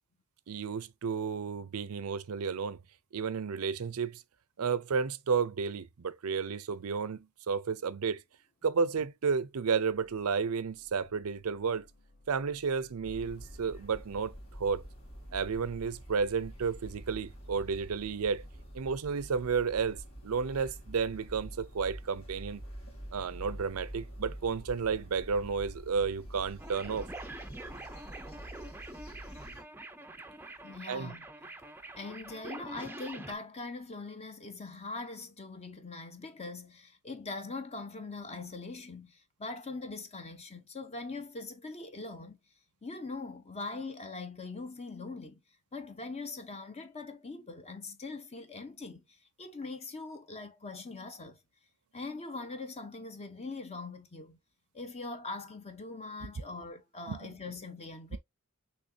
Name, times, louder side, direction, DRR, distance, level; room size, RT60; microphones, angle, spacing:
voice 1, 0.5-2.8 3.1-4.2 4.6-8.2 8.6-11.8 12.3-14.3 14.6-14.8 15.3-18.4 18.7-22.6 23.1-27.1 30.9-31.1 57.1-57.3, right 5 dB, 80° right, 0.5 m, -32 dB
sound 1, 7.5-7.6 8.1-15.0, left 1 dB, 45° left, 1.6 m, -60 dB
sound 2, 13.0-29.6, equal, 65° left, 2.4 m, -47 dB
sound 3, 26.6-33.3, right 2 dB, 10° right, 0.5 m, -45 dB
voice 2, 30.6-31.2 32.0-42.4 42.8-45.4 45.7-51.4 51.9-54.4 54.7-58.2, left 3 dB, 30° left, 0.7 m, -42 dB
6.3 x 3.1 x 2.7 m
head